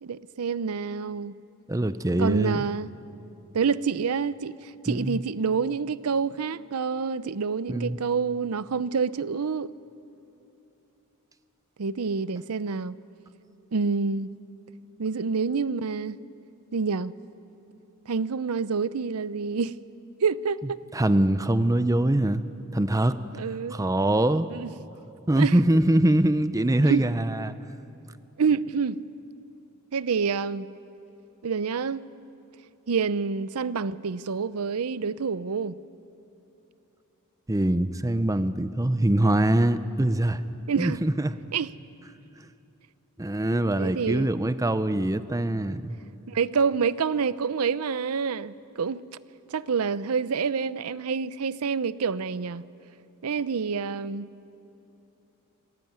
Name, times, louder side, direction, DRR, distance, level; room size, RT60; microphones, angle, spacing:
voice 1, 0.0-1.3 2.2-2.9 3.5-9.7 11.8-13.0 13.7-14.3 15.0-16.2 16.7-17.2 18.1-19.7 20.2-20.8 23.3-23.8 24.5-24.7 25.4-25.6 26.8-27.1 28.4-29.0 29.9-30.7 31.4-32.1 32.9-35.8 40.7-41.0 41.5-41.7 43.8-44.3 46.3-49.0 49.5-52.6 53.2-54.3, right 5 dB, 90° right, 0.6 m, -27 dB
voice 2, 1.7-2.7 4.9-5.2 7.7-8.0 20.9-22.4 22.7-23.2 23.7-24.5 25.3-27.6 37.5-40.4 40.8-41.3 43.2-46.0, right 1 dB, 15° right, 0.6 m, -23 dB
26.5 x 16.5 x 9.5 m
head